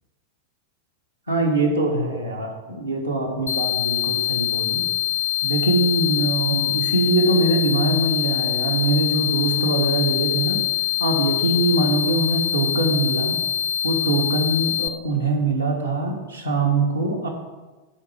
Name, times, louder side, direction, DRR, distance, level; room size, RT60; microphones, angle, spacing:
voice 1, 1.3-4.8 5.4-10.6 11.0-13.4 13.8-17.3, right 2 dB, 85° right, -1 dB, 1.4 m, -22 dB
sound 1, 3.5-14.9, left 12 dB, 60° left, 0.4 m, -24 dB
7.3 x 4.7 x 6.2 m, 1.2 s
figure-of-eight pair, 90°, 0 cm